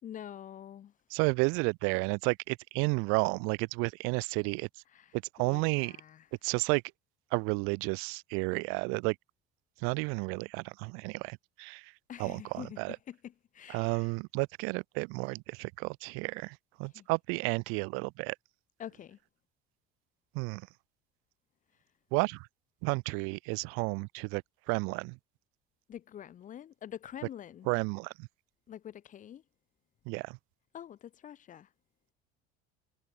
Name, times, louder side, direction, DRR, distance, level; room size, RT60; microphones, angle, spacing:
voice 1, 0.0-0.9 4.9-6.3 12.1-12.8 13.1-14.1 16.8-17.1 18.8-19.2 25.9-27.7 28.7-29.4 30.7-31.7, left 10 dB, 40° left, 3.3 m, -46 dB
voice 2, 1.1-4.7 5.1-6.0 6.4-6.8 7.3-9.1 9.8-11.9 12.2-13.0 13.7-18.3 20.3-20.6 22.1-22.5 22.8-24.4 24.7-25.2 27.7-28.3 30.0-30.4, right 32 dB, 85° right, 1.5 m, -32 dB
cardioid pair, 150°, 21 cm